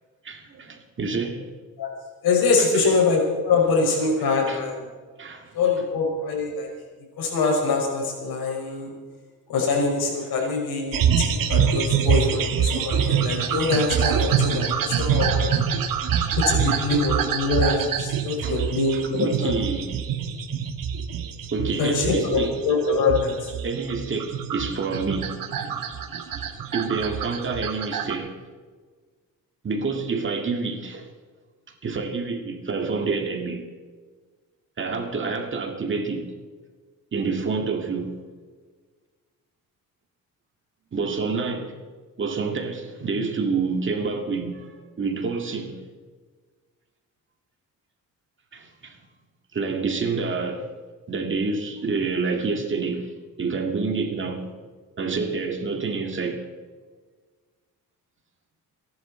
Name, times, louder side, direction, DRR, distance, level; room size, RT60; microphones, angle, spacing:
voice 1, 0.2-1.5 2.6-2.9 4.5-4.6 5.2-5.5 16.7-16.8 18.4-18.6 18.9-20.0 21.5-22.6 23.6-28.4 29.6-31.1 31.8-33.6 34.8-36.3 37.1-38.2 40.9-41.7 42.2-45.9 48.5-49.0 49.5-50.7 51.1-53.1 53.4-54.5 55.0-56.5, right 4 dB, 35° right, 2.0 m, -28 dB
voice 2, 2.2-4.8 5.5-6.7 7.2-8.9 9.5-15.7 16.4-19.5 21.8-23.5, left 3 dB, 85° left, 5.9 m, -24 dB
sound 1, 10.9-28.1, right 7 dB, 70° right, 1.6 m, -25 dB
29.5 x 11.5 x 4.3 m
cardioid pair, 155°, 35 cm